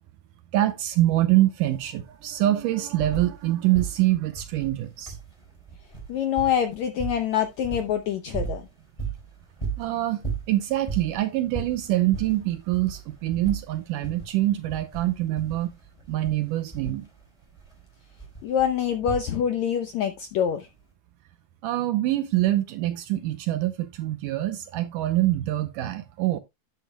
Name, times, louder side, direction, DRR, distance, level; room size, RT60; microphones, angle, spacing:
voice 1, 0.5-5.2 9.8-15.7 16.1-17.1 21.6-26.4, right 15 dB, 80° right, 2.0 m, -25 dB
sound 1, 2.0-3.5 3.7-19.7 20.8-20.9, right 5 dB, 10° left, 4.0 m, -37 dB
voice 2, 6.1-8.6 18.4-20.7, left 9 dB, 80° left, 1.6 m, -25 dB
11.5 x 8.4 x 2.2 m
omnidirectional pair, 4.3 m